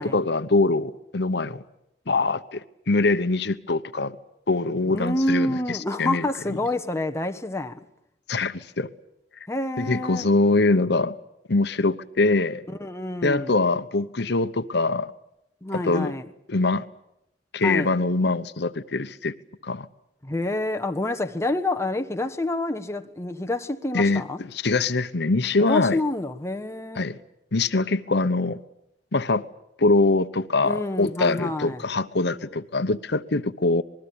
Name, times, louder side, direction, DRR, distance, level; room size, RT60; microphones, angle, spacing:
voice 1, 0.0-1.6 2.1-4.2 4.5-6.3 8.3-8.9 9.8-11.2 11.5-12.6 13.2-15.1 15.7-16.1 16.5-16.8 17.5-19.3 19.6-19.9 23.9-24.2 24.5-26.0 27.0-27.2 27.5-28.6 29.1-29.4 29.8-33.8, left 3 dB, 65° left, 0.9 m, -23 dB
voice 2, 4.9-7.8 9.5-10.3 12.8-13.6 15.6-16.3 17.6-17.9 20.2-24.4 25.6-27.1 30.6-31.8, left 1 dB, 15° left, 1.2 m, -28 dB
26.0 x 21.0 x 8.7 m
head